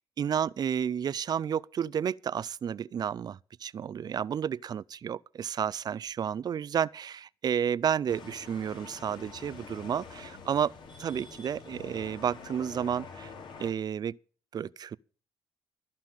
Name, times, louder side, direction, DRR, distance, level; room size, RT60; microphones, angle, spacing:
voice 1, 0.2-10.7 11.0-13.3 13.6-14.2 14.5-15.0, right 8 dB, 50° right, 0.5 m, -31 dB
sound 1, 8.1-13.7, left 5 dB, 65° left, 3.0 m, -46 dB
14.0 x 5.6 x 9.0 m
supercardioid pair, 65°, 9 cm